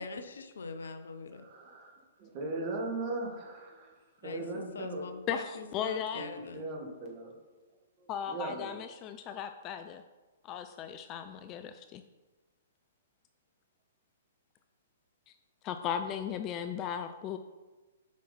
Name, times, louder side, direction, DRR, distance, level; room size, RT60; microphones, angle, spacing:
voice 1, 0.0-1.4 4.2-6.7, left 4 dB, 65° left, 9 dB, 0.6 m, -43 dB
voice 2, 1.3-5.1 6.1-7.3 8.0-8.8, right 2 dB, 35° right, 0 dB, 1.9 m, -39 dB
voice 3, 5.3-6.2 8.1-10.0 10.4-12.0 15.6-17.4, left 8 dB, 25° left, 9 dB, 0.4 m, -36 dB
7.3 x 5.6 x 4.2 m, 1.2 s
figure-of-eight pair, 115°, 0 cm